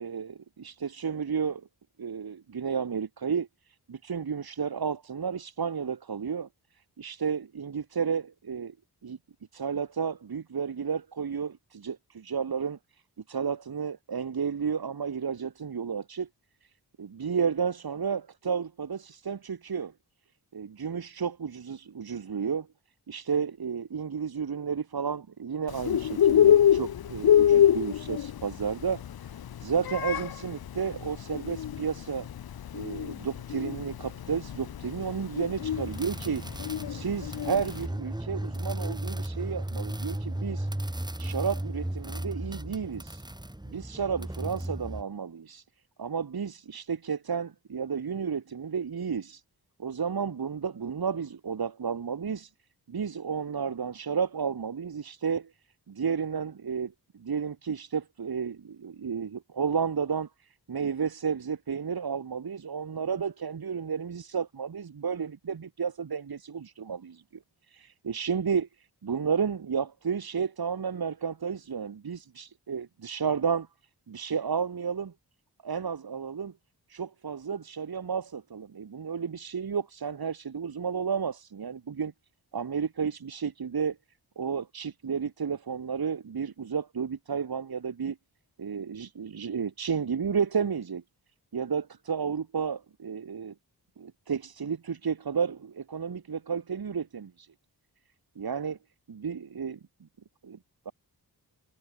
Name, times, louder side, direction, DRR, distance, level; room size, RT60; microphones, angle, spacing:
voice 1, 0.0-1.7 2.0-3.5 3.9-6.5 7.0-8.7 9.0-9.2 9.5-12.8 13.3-16.3 17.0-19.9 20.5-22.7 23.1-29.0 29.6-32.3 32.7-40.7 41.2-43.2 43.7-45.6 46.0-49.4 49.8-52.5 52.9-55.5 55.9-67.2 67.7-73.7 74.1-75.1 75.6-76.5 76.9-82.1 82.5-84.0 84.4-88.2 88.6-91.0 91.5-93.5 94.0-97.5 98.4-98.8 99.1-99.8 100.4-100.6 100.8-100.9, right 6 dB, 65° right, 2.8 m, -32 dB
Bird, 25.7-37.8, left 10 dB, 65° left, 0.8 m, -25 dB
sound 1, 35.6-45.0, right 1 dB, 10° right, 5.7 m, -35 dB
wide cardioid pair, 85°, 40 cm